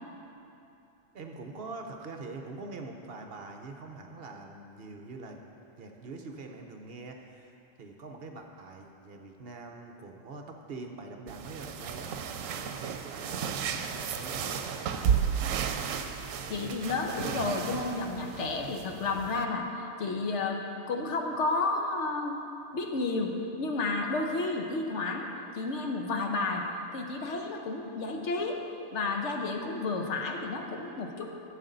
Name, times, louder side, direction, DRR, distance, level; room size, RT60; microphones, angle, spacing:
voice 1, 1.1-5.4 5.8-12.1 12.5-15.4, right 3 dB, 55° right, 3 dB, 0.9 m, -44 dB
sound 1, 11.3-19.4, right 7 dB, 85° right, 1.0 m, -33 dB
voice 2, 16.5-19.7 20.0-20.6 20.9-22.4 22.7-25.3 25.5-26.6 26.9-28.6 28.9-31.3, left 3 dB, 65° left, 2 dB, 1.1 m, -31 dB
12.5 x 7.6 x 3.9 m, 2.7 s
omnidirectional pair, 1.3 m